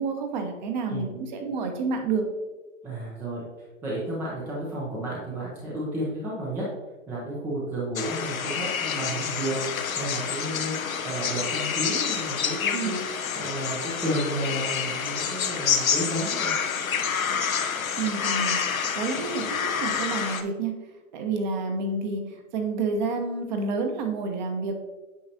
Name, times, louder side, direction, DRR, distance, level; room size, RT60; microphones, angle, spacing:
voice 1, 0.0-2.2 12.7-13.0 18.0-18.6 18.9-20.7 21.1-24.8, right 4 dB, 35° right, 4 dB, 1.0 m, -29 dB
voice 2, 2.8-3.4 3.8-6.7 7.1-10.8 11.0-13.0 13.4-16.5, right 1 dB, 5° right, -5 dB, 0.6 m, -32 dB
sound 1, 8.0-20.4, left 7 dB, 90° left, 0.8 m, -28 dB
8.7 x 5.7 x 2.8 m, 1.1 s
hypercardioid pair, 140°, 40 cm